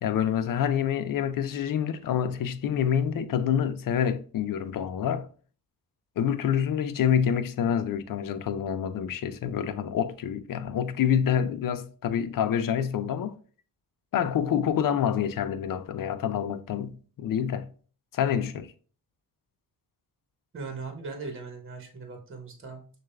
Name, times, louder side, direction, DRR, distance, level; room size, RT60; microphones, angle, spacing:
voice 1, 0.0-5.3 6.2-13.4 14.1-17.7 18.1-18.7, left 8 dB, 60° left, 0.5 m, -27 dB
voice 2, 20.5-22.9, right 4 dB, 35° right, 1.1 m, -39 dB
6.2 x 2.4 x 2.3 m
cardioid pair, 85°, 39 cm